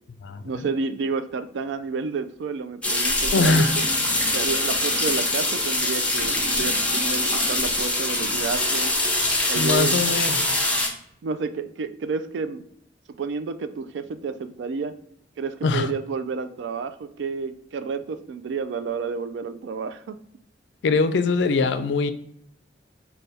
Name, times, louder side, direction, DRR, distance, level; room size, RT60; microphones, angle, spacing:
voice 1, 0.4-3.8 4.3-8.9 9.5-10.0 11.2-12.6 13.2-14.9 15.4-20.2, right 5 dB, 70° right, 12 dB, 0.3 m, -30 dB
sound 1, 2.8-10.9, left 2 dB, 5° left, 0.7 m, -23 dB
voice 2, 3.3-3.7 9.6-10.6 15.6-15.9 20.8-22.1, left 4 dB, 65° left, 10 dB, 0.4 m, -22 dB
3.4 x 2.2 x 4.0 m, 0.72 s
head